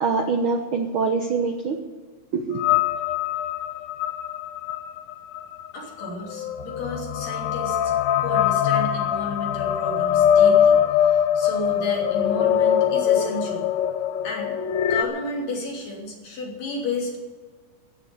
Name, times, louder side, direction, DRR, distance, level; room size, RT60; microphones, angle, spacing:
voice 1, 0.0-1.8 2.3-2.6, right 4 dB, 85° right, 5 dB, 1.1 m, -24 dB
sound 1, 2.6-15.0, left 9 dB, 75° left, 1.6 m, -22 dB
voice 2, 5.7-13.7 14.2-14.6 14.9-17.2, left 2 dB, 55° left, -1 dB, 4.2 m, -32 dB
15.0 x 8.0 x 9.3 m, 1.4 s
omnidirectional pair, 3.8 m